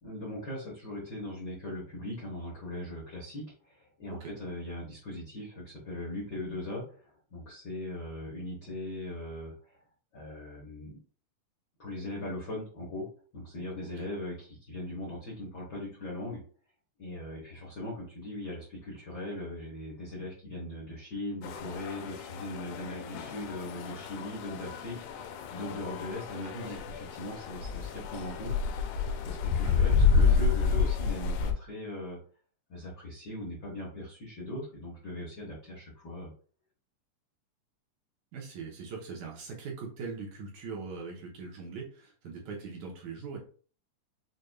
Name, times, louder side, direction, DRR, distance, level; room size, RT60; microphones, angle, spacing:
voice 1, 0.0-9.5 10.1-11.0 11.8-13.1 13.3-16.4 17.0-28.5 29.2-32.2 32.7-36.3, left 1 dB, 65° left, -5 dB, 1.0 m, -39 dB
sound 1, 21.4-31.5, left 5 dB, 85° left, 2.1 m, -29 dB
voice 2, 26.4-26.8 29.6-29.9 30.2-30.3 38.3-43.4, right 5 dB, 75° right, -2 dB, 2.0 m, -41 dB
6.4 x 2.5 x 2.3 m, 0.42 s
omnidirectional pair, 3.7 m